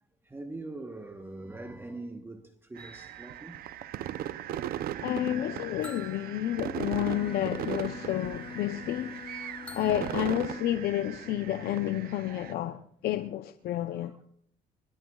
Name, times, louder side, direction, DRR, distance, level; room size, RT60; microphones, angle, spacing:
voice 1, 0.2-3.6 6.9-7.4 9.3-10.3 12.3-12.6 13.9-14.2, right 2 dB, 15° right, 1.1 m, -44 dB
sound 1, 2.8-4.8 5.8-7.5 9.6-11.1, left 1 dB, 5° left, 1.5 m, -52 dB
sound 2, 2.8-12.5, right 12 dB, 65° right, 0.6 m, -38 dB
voice 2, 5.0-9.2 9.7-14.1, left 12 dB, 70° left, 0.7 m, -30 dB
Bowed string instrument, 6.7-10.9, left 6 dB, 30° left, 1.0 m, -44 dB
23.0 x 20.0 x 2.4 m
cardioid pair, 110°, 17 cm